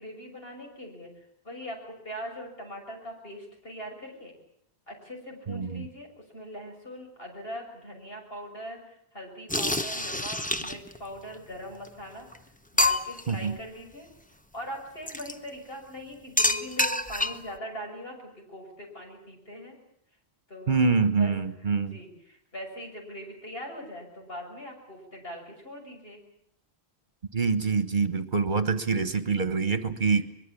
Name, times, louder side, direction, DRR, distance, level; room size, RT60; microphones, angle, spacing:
voice 1, 0.0-4.4 4.9-12.3 12.7-14.1 14.5-19.8 20.5-26.2 28.6-28.8, equal, 65° left, 2 dB, 6.8 m, -41 dB
voice 2, 5.5-5.8 13.3-13.6 20.7-22.0 27.3-30.2, right 5 dB, 50° right, 12 dB, 1.4 m, -25 dB
sound 1, 9.5-11.0 11.9-12.0 12.3-12.4 12.8-13.3 15.1-15.3 16.4-17.5, left 1 dB, 10° left, 0.9 m, -27 dB
23.5 x 22.0 x 8.5 m, 0.72 s
omnidirectional pair, 1.1 m